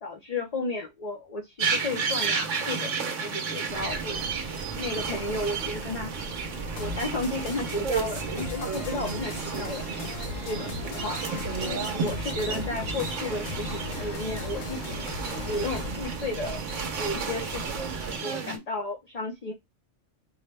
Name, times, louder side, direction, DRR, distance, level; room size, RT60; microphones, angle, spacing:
voice 1, 0.0-2.9 3.2-4.2 4.8-6.1 6.8-9.8 10.4-11.2 11.6-15.2 15.5-16.6 17.0-17.9 18.2-19.5, left 2 dB, 40° left, 2 dB, 0.6 m, -33 dB
sound 1, 1.6-18.6, right 5 dB, 85° right, 1.2 m, -33 dB
sound 2, 3.7-18.2, right 4 dB, 40° right, 0.8 m, -39 dB
sound 3, 6.7-15.9, left 6 dB, 65° left, 1.0 m, -39 dB
4.5 x 2.1 x 3.3 m, 0.19 s
omnidirectional pair, 1.2 m